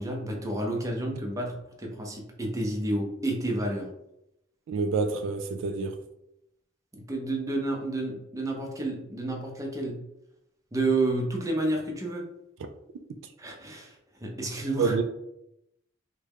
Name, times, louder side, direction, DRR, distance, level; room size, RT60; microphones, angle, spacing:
voice 1, 0.0-1.5 1.8-3.9 6.9-10.0 10.7-12.2 13.4-14.0 14.2-15.0, right 2 dB, 15° right, 0.5 m, -30 dB
voice 2, 4.7-6.0 14.8-15.0, right 4 dB, 65° right, 0.3 m, -27 dB
3.4 x 2.2 x 3.4 m
head